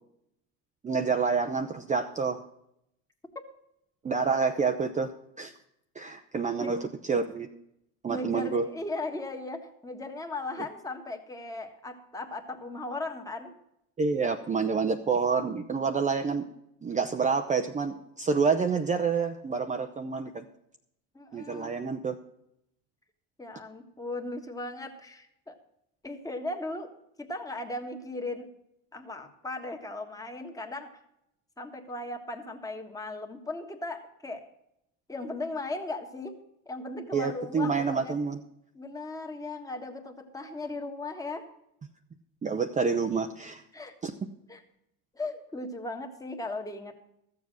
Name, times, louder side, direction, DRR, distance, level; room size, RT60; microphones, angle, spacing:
voice 1, 0.8-2.4 4.0-5.1 5.4-5.5 6.0-6.8 7.1-7.5 8.0-8.7 14.0-16.4 16.8-20.5 21.3-22.2 37.1-38.4 42.4-43.6 44.0-44.1, right 5 dB, 20° right, 6 dB, 0.6 m, -28 dB
voice 2, 8.1-13.6 21.1-21.8 23.4-25.6 26.0-26.9 27.2-28.5 28.9-30.9 31.6-34.4 35.1-36.4 36.6-38.1 38.7-41.4 43.7-43.9 44.5-44.6 45.1-47.0, left 2 dB, 10° left, 4 dB, 1.5 m, -37 dB
13.5 x 7.3 x 6.2 m, 0.79 s
supercardioid pair, 100°, 38 cm